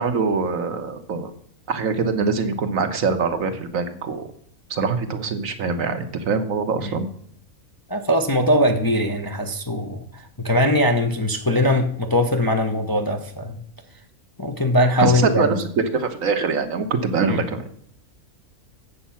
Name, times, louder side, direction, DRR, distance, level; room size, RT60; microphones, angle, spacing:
voice 1, 0.0-1.3 1.7-4.3 4.7-7.1 15.0-17.7, right 4 dB, 70° right, 7 dB, 1.4 m, -23 dB
voice 2, 7.9-13.6 14.4-15.6 17.3-17.4, equal, 20° left, 3 dB, 0.6 m, -21 dB
8.5 x 7.2 x 5.7 m, 0.64 s
omnidirectional pair, 1.5 m